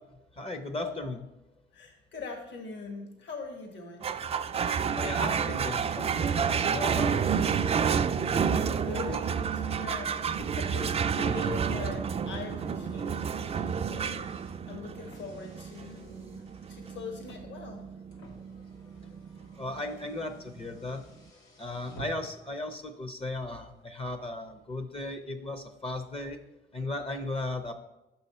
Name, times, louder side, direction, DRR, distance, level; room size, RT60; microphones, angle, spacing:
voice 1, 0.3-1.2 5.0-7.3 9.1-9.2 14.0-14.1 16.8-16.9 19.6-21.0 21.6-26.4 26.7-27.7, left 2 dB, 30° left, 8 dB, 0.6 m, -36 dB
voice 2, 1.7-4.1 8.3-16.4 16.7-17.9, left 4 dB, 65° left, 4 dB, 1.5 m, -42 dB
sound 1, 4.0-20.8, right 7 dB, 30° right, 0.3 m, -30 dB
Car, 12.2-22.5, equal, 90° left, 1.5 m, -53 dB
6.4 x 5.5 x 4.2 m, 0.97 s
cardioid pair, 90°, 20 cm